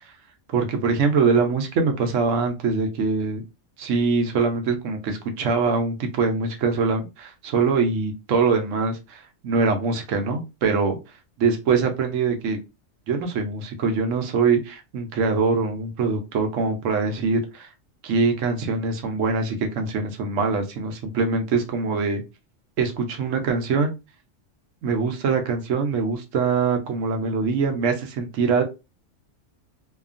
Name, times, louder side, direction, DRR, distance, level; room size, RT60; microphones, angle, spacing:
voice 1, 0.5-3.4 3.8-11.0 11.4-12.6 13.1-17.7 18.0-22.2 22.8-23.9 24.8-28.6, right 4 dB, 75° right, 5 dB, 1.0 m, -23 dB
2.8 x 2.3 x 2.4 m, 0.26 s
omnidirectional pair, 1.4 m